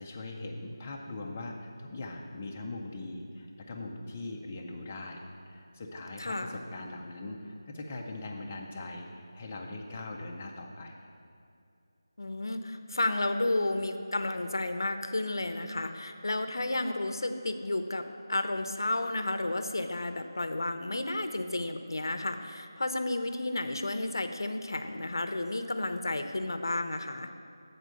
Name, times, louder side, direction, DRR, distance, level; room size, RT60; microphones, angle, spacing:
voice 1, 0.0-11.0, left 2 dB, 15° left, 0 dB, 0.3 m, -41 dB
voice 2, 6.2-6.6 12.2-27.3, left 2 dB, 65° left, 8 dB, 0.6 m, -32 dB
8.0 x 4.4 x 6.2 m, 2.6 s
figure-of-eight pair, 175°, 2 cm